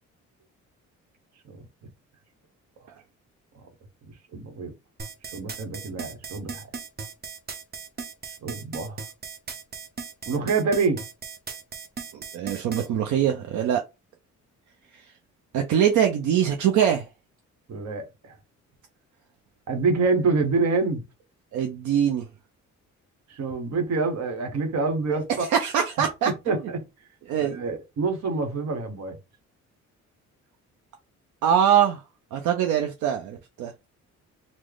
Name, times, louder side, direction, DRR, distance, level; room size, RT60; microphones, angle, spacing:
voice 1, 4.3-4.7 5.3-6.7 8.4-9.0 10.3-11.0 17.7-18.3 19.7-21.0 23.3-25.5 26.0-26.8 27.4-29.2, right 4 dB, 60° right, 1.0 m, -26 dB
sound 1, 5.0-12.9, right 5 dB, 30° right, 0.7 m, -37 dB
voice 2, 12.1-13.8 14.9-15.1 15.5-17.1 21.5-22.3 25.1-26.6 27.3-27.6 31.4-32.0 32.3-33.7, right 9 dB, 75° right, 0.6 m, -23 dB
3.1 x 2.0 x 3.8 m
cardioid pair, 90°, 30 cm